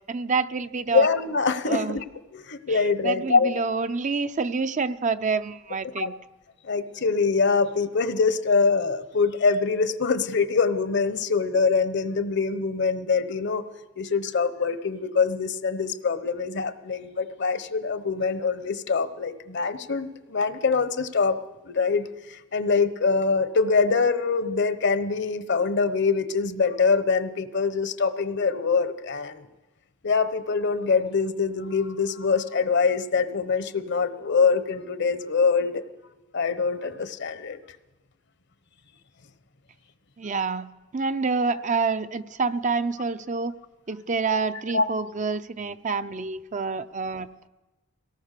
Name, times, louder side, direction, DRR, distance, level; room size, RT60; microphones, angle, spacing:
voice 1, 0.1-1.1 1.7-2.0 2.7-6.2 40.2-43.6 43.9-47.5, right 4 dB, 40° right, 11 dB, 0.6 m, -27 dB
voice 2, 0.9-2.0 2.3-3.6 6.0-6.1 6.6-13.6 14.0-21.4 21.7-29.4 30.0-35.8 36.3-37.6 44.7-44.9, left 4 dB, 60° left, 13 dB, 1.0 m, -24 dB
22.5 x 18.0 x 6.7 m, 1.1 s
head